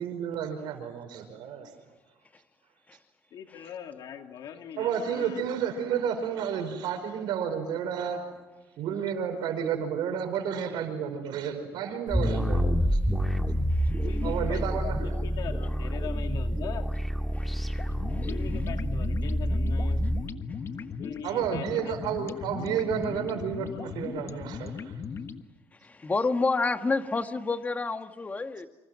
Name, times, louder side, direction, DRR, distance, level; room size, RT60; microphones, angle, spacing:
voice 1, 0.0-1.8 4.8-8.3 8.8-13.0 14.2-15.0 21.2-24.9, right 8 dB, 75° right, 7 dB, 5.2 m, -31 dB
voice 2, 3.3-5.5 13.9-16.9 18.3-20.0 21.0-22.0, left 8 dB, 60° left, 5 dB, 2.3 m, -41 dB
sound 1, 12.1-20.2, equal, ahead, 2.0 m, -28 dB
voice 3, 13.7-14.1 17.3-17.8 18.1-18.4 25.8-28.7, left 3 dB, 20° left, 8 dB, 1.5 m, -30 dB
sound 2, 17.8-25.4, left 6 dB, 40° left, 1.3 m, -38 dB
28.0 x 26.5 x 6.2 m, 1.2 s
cardioid pair, 120°, 8 cm